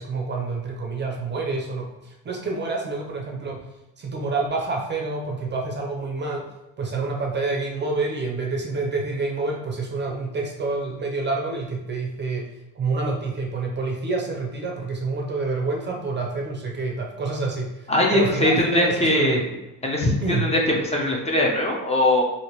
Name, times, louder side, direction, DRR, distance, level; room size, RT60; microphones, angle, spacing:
voice 1, 0.0-3.6 4.0-6.4 6.8-12.5 12.8-19.4 20.2-20.5, right 3 dB, 30° right, 0 dB, 0.6 m, -28 dB
voice 2, 17.9-19.6 19.8-22.2, left 1 dB, 15° left, -1 dB, 0.6 m, -21 dB
2.9 x 2.8 x 2.9 m, 0.94 s
supercardioid pair, 95°, 38 cm